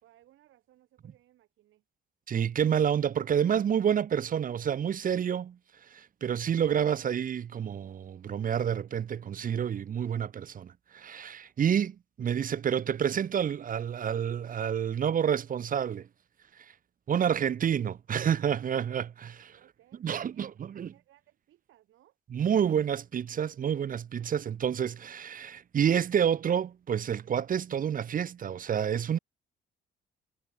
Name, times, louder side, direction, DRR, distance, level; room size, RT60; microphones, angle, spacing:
voice 1, 0.0-1.8 19.6-22.2, right 14 dB, 85° right, 4.1 m, -63 dB
voice 2, 2.3-5.6 5.9-16.1 17.1-19.6 20.0-20.9 22.3-29.2, right 8 dB, 45° right, 0.7 m, -29 dB
cardioid pair, 90°, 20 cm